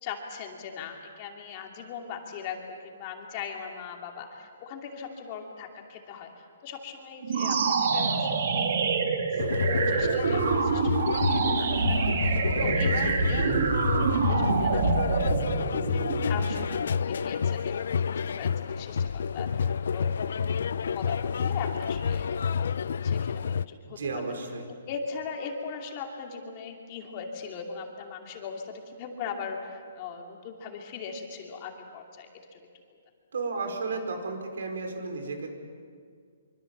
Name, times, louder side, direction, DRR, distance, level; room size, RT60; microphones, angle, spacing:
voice 1, 0.0-8.8 9.3-14.8 15.2-20.1 20.9-22.3 23.0-24.0 24.9-32.6, left 5 dB, 25° left, 2 dB, 2.6 m, -40 dB
sound 1, 7.2-16.8, right 5 dB, 50° right, 2.3 m, -26 dB
sound 2, 9.4-23.6, left 6 dB, 60° left, 0.6 m, -29 dB
voice 2, 23.9-24.7 33.3-35.5, right 3 dB, 75° right, 5 dB, 5.1 m, -33 dB
25.5 x 25.0 x 7.3 m, 2.1 s
hypercardioid pair, 175°, 0 cm